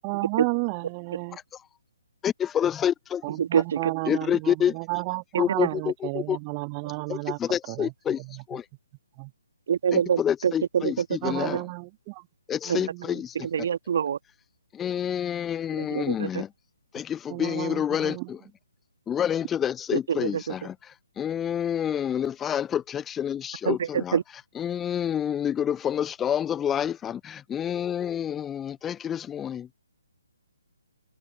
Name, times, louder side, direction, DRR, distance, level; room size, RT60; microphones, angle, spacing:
voice 1, 0.0-1.4 3.2-7.4 7.7-8.6 9.2-9.3 11.2-12.3 12.6-13.2 17.3-18.3, right 39 dB, 20° right, 1.3 m, -33 dB
voice 2, 2.2-3.2 4.1-4.7 5.4-6.4 7.1-8.2 8.5-8.6 9.9-11.6 12.5-13.3 14.7-16.5 16.9-18.4 19.1-20.7 21.2-24.2 24.6-29.7, left 9 dB, 10° left, 0.5 m, -28 dB
voice 3, 3.4-3.9 5.6-5.7 9.7-11.0 12.7-12.8 13.3-14.2 15.7-16.3 19.9-20.5 23.6-24.2, right 8 dB, 45° right, 1.2 m, -26 dB
open air
figure-of-eight pair, 135°, 0 cm